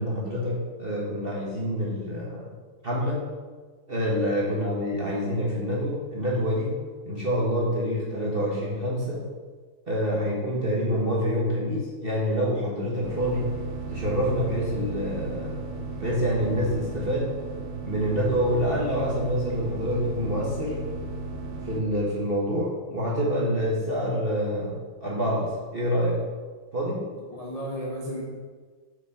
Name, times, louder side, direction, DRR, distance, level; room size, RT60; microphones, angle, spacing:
voice 1, 0.0-2.5 2.8-3.3 3.9-6.8 7.0-9.2 9.9-13.5 13.9-15.6 16.0-17.3 17.8-20.8 21.6-26.2 26.7-27.1, equal, 35° right, -5 dB, 1.0 m, -27 dB
sound 1, 13.0-21.8, right 3 dB, 65° right, 1.5 m, -35 dB
voice 2, 27.3-28.2, equal, 35° left, -4 dB, 0.6 m, -34 dB
6.5 x 5.5 x 4.8 m, 1.5 s
omnidirectional pair, 2.4 m